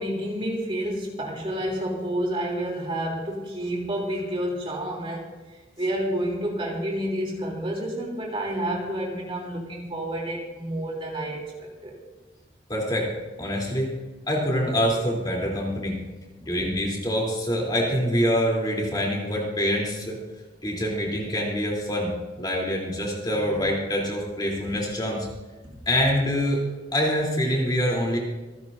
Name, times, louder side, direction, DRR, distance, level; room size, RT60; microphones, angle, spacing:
voice 1, 0.0-5.3 5.8-12.0, right 1 dB, 30° right, -1 dB, 3.3 m, -29 dB
voice 2, 12.7-13.1 13.4-13.9 14.3-16.0 16.4-20.2 20.6-22.1 22.4-25.3 25.8-26.7 26.9-28.2, equal, 25° left, -2 dB, 3.5 m, -25 dB
27.0 x 10.5 x 2.7 m, 1.2 s
head